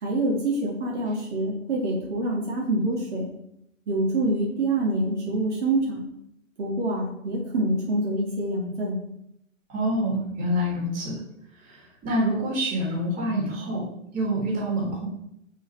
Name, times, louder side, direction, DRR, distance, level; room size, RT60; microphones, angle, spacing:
voice 1, 0.0-3.3 3.9-6.0 6.6-9.0, right 2 dB, 60° right, -4 dB, 3.1 m, -26 dB
voice 2, 9.7-11.2 11.6-13.9 14.1-15.1, equal, 20° right, -4 dB, 3.7 m, -27 dB
6.2 x 5.7 x 5.8 m, 0.77 s
figure-of-eight pair, 120°, 39 cm